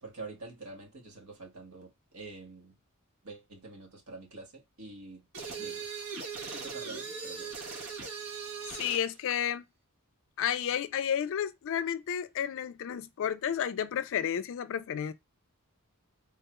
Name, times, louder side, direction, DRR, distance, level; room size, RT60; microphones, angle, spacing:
voice 1, 0.0-2.7 3.2-5.9 6.3-7.5, right 3 dB, 70° right, 1.3 m, -47 dB
sound 1, 5.3-9.1, right 5 dB, 90° right, 1.0 m, -39 dB
voice 2, 8.7-9.6 10.4-15.1, left 9 dB, 60° left, 0.4 m, -31 dB
3.6 x 2.3 x 2.8 m
head